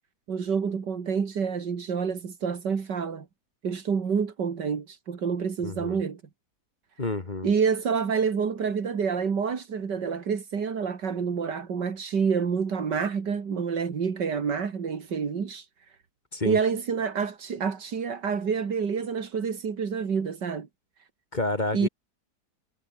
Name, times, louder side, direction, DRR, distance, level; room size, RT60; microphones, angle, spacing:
voice 1, 0.3-3.3 3.6-6.2 7.4-15.7 16.4-20.7 21.7-21.9, right 6 dB, 85° right, 2.8 m, -28 dB
voice 2, 5.6-6.0 7.0-7.5 16.3-16.6 21.3-21.9, left 2 dB, 25° left, 1.9 m, -29 dB
omnidirectional pair, 1.8 m